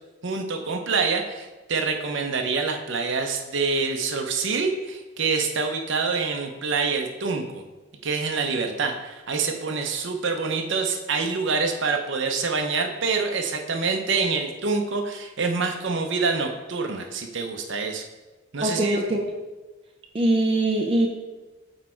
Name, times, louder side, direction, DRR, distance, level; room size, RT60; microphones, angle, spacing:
voice 1, 0.2-7.6 8.0-18.0 18.5-19.0, right 4 dB, 60° right, 4 dB, 0.8 m, -26 dB
voice 2, 18.6-19.2 20.1-21.1, right 1 dB, 25° right, 1 dB, 0.5 m, -22 dB
6.5 x 4.7 x 4.4 m, 1.2 s
head